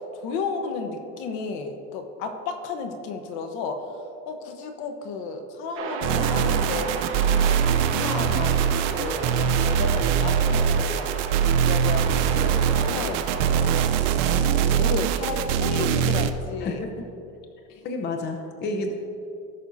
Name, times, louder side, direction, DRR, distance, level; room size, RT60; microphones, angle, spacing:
voice 1, 0.2-3.8 4.3-7.6 7.9-11.2 11.6-13.7 14.4-16.8, left 4 dB, 55° left, 6 dB, 1.1 m, -33 dB
sound 1, 5.8-13.5, right 5 dB, 40° right, 1.1 m, -34 dB
sound 2, 6.0-16.3, right 8 dB, 80° right, 0.8 m, -22 dB
voice 2, 16.6-16.9 17.8-18.9, left 2 dB, 30° left, 4 dB, 0.8 m, -30 dB
18.0 x 6.2 x 2.7 m, 2.7 s
cardioid pair, 145°, 35 cm